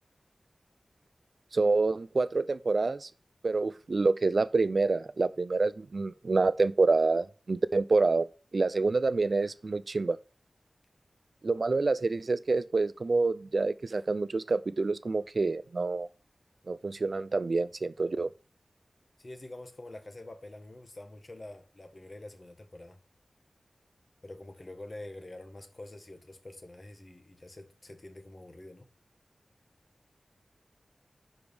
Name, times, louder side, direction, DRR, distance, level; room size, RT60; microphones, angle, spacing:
voice 1, 1.5-3.1 3.4-10.2 11.4-16.1 16.7-18.3, right 3 dB, 65° right, 0.4 m, -27 dB
voice 2, 19.2-23.0 24.2-28.9, left 1 dB, 45° left, 1.2 m, -46 dB
5.2 x 4.7 x 5.1 m
cardioid pair, 50°, 0 cm